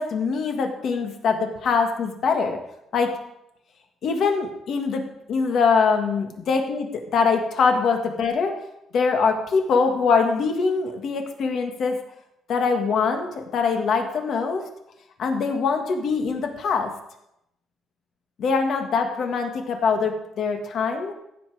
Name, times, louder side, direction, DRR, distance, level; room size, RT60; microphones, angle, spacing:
voice 1, 0.0-2.6 2.9-3.1 4.0-8.5 8.9-12.0 12.5-14.6 15.2-16.9 18.4-21.1, left 5 dB, 45° left, 4 dB, 1.7 m, -23 dB
15.5 x 7.9 x 4.8 m, 0.81 s
cardioid pair, 175°, 0 cm